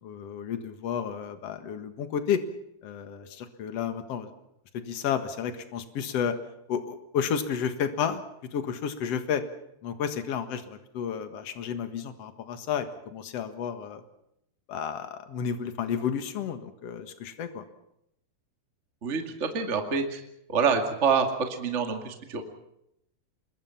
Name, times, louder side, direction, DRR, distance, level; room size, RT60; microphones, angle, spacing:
voice 1, 0.0-2.4 2.8-4.3 4.7-6.4 6.7-8.2 8.5-9.4 9.8-14.0 14.7-17.6, left 7 dB, 50° left, 8 dB, 2.2 m, -31 dB
voice 2, 19.0-20.2 20.5-22.4, right 5 dB, 25° right, 4 dB, 1.9 m, -26 dB
26.5 x 22.5 x 5.9 m, 0.79 s
omnidirectional pair, 4.4 m